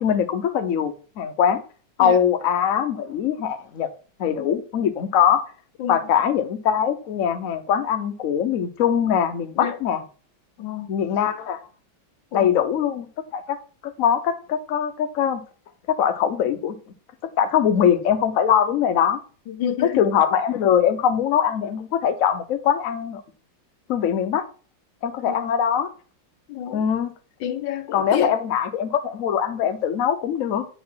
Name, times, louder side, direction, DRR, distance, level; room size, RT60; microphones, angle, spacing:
voice 1, 0.0-1.6 2.0-3.9 4.2-5.5 5.9-10.0 10.9-11.6 12.3-13.1 13.3-13.6 13.8-15.4 15.9-16.7 17.4-19.2 19.8-23.2 23.9-24.4 25.0-25.9 26.7-27.1 27.9-30.7, left 8 dB, 55° left, 1.0 m, -22 dB
voice 2, 10.6-10.9 12.3-12.5 19.5-20.0 25.3-25.5 26.5-26.8 27.4-28.3, left 9 dB, 75° left, 1.4 m, -29 dB
9.4 x 4.1 x 5.6 m
omnidirectional pair, 2.1 m